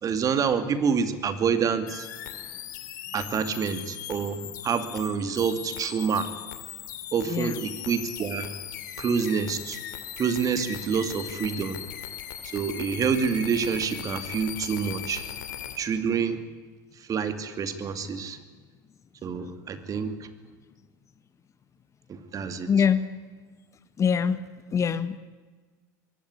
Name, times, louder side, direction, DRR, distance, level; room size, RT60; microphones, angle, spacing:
voice 1, 0.0-2.1 3.1-6.3 7.1-8.5 9.0-9.8 10.2-11.8 12.4-15.3 15.8-16.4 17.0-18.4 19.2-20.3 22.1-22.7, right 6 dB, 35° right, 9 dB, 2.5 m, -27 dB
sound 1, 1.9-15.8, left 11 dB, 85° left, 2.5 m, -39 dB
voice 2, 7.3-7.6 22.7-23.1 24.0-24.4 24.7-25.2, left 7 dB, 30° left, 14 dB, 1.2 m, -23 dB
21.5 x 17.0 x 9.8 m, 1.4 s
hypercardioid pair, 95°, 10 cm